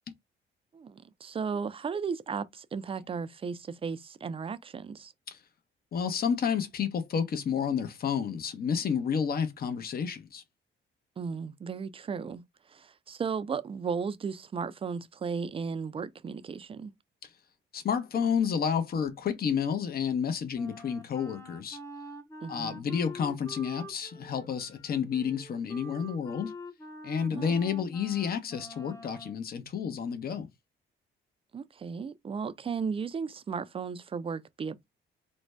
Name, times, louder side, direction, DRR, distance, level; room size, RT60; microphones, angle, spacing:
voice 1, 0.7-5.1 11.2-12.4 12.7-16.9 22.4-22.8 27.3-27.5 31.5-34.8, right 5 dB, 30° right, 0.4 m, -35 dB
voice 2, 5.9-10.4 17.2-17.3 17.7-21.8 22.5-26.5 27.0-30.5, left 7 dB, 50° left, 0.7 m, -30 dB
Wind instrument woodwind instrument, 20.5-29.4, left 1 dB, 15° left, 0.7 m, -46 dB
2.6 x 2.1 x 3.2 m
cardioid pair, 90°, 20 cm